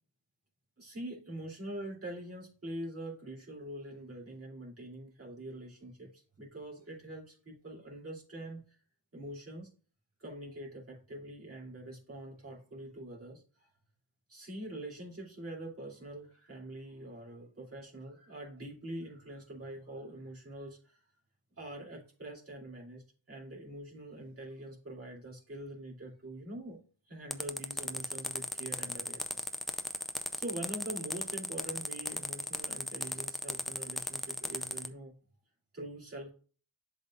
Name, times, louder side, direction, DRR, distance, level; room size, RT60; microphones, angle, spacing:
voice 1, 0.8-8.8 9.1-9.7 10.2-13.7 14.3-21.0 21.5-29.5 30.4-35.1 35.7-36.3, right 1 dB, 30° right, -3 dB, 2.7 m, -44 dB
sound 1, 27.3-34.9, left 1 dB, ahead, 0.3 m, -36 dB
11.0 x 4.0 x 2.4 m, 0.39 s
wide cardioid pair, 165°, 48 cm